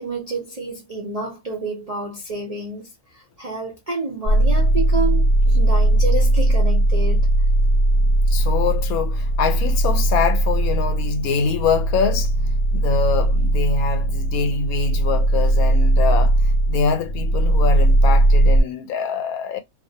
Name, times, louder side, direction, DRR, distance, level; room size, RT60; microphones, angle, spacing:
voice 1, 0.0-7.5, right 3 dB, 80° right, 0.3 m, -29 dB
sound 1, 4.3-18.6, right 1 dB, 50° right, 1.0 m, -18 dB
voice 2, 8.3-12.3 12.7-16.4 16.7-19.6, left 6 dB, 80° left, 1.0 m, -24 dB
2.5 x 2.0 x 2.6 m
omnidirectional pair, 1.5 m